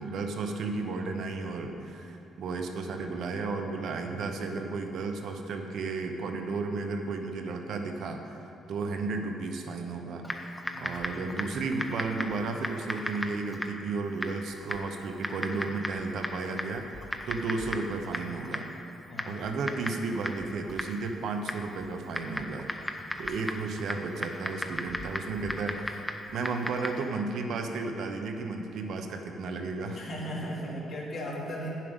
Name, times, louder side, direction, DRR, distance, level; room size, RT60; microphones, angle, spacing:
voice 1, 0.0-8.4 8.7-10.2 10.8-18.7 19.2-22.7 23.2-26.0 26.3-30.0, right 3 dB, 70° right, 4 dB, 0.9 m, -33 dB
Typing, 10.2-27.1, left 1 dB, 5° left, 0.7 m, -37 dB
voice 2, 10.7-11.0 19.1-19.4 23.0-23.4 29.9-31.7, equal, 65° left, -5 dB, 2.3 m, -37 dB
8.9 x 7.5 x 5.2 m, 2.7 s
cardioid pair, 90°, 0 cm